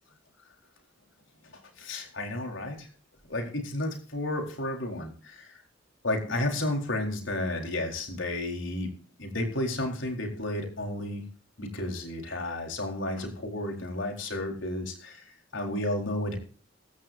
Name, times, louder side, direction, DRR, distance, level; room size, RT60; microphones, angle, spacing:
voice 1, 1.4-2.9 3.3-5.6 6.0-8.9 9.2-11.2 11.6-16.4, left 1 dB, 75° left, 3 dB, 4.1 m, -32 dB
15.0 x 15.0 x 2.6 m, 0.41 s
head